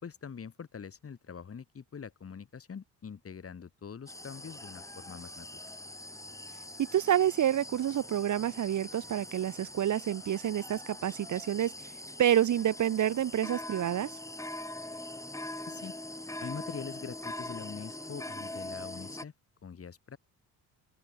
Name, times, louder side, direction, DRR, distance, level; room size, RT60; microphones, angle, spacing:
voice 1, 0.0-5.7 15.7-15.9 16.4-19.3 19.6-20.2, left 6 dB, 40° left, 4.3 m, -44 dB
sound 1, 4.1-19.2, left 1 dB, 10° left, 2.5 m, -43 dB
voice 2, 6.8-11.7 12.2-14.1, right 11 dB, 50° right, 1.0 m, -28 dB
open air
cardioid pair, 115°, 37 cm